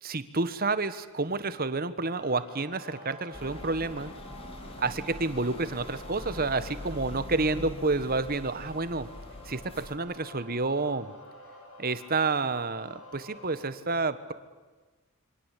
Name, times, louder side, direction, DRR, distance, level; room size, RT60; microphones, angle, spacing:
voice 1, 0.0-4.1 4.8-9.1 9.4-11.1 11.8-14.3, right 3 dB, 40° right, 13 dB, 1.4 m, -29 dB
sound 1, 2.0-13.7, left 2 dB, 75° left, 7.0 m, -49 dB
sound 2, 3.3-9.9, left 1 dB, 25° left, 2.8 m, -43 dB
27.5 x 24.5 x 8.5 m, 1.3 s
head